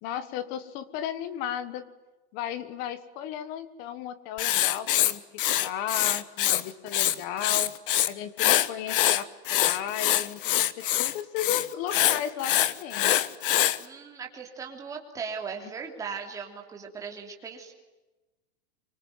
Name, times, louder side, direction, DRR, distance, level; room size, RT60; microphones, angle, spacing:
voice 1, 0.0-1.8 2.3-7.7 8.1-13.2 15.6-15.7, left 10 dB, 25° left, 15 dB, 1.3 m, -35 dB
Writing, 4.4-6.6 6.9-8.1 8.4-13.8, left 12 dB, 50° left, 1.3 m, -24 dB
voice 2, 13.8-17.7, right 6 dB, 10° right, 1 dB, 3.1 m, -38 dB
25.0 x 25.0 x 9.5 m, 1.1 s
supercardioid pair, 180°, 34 cm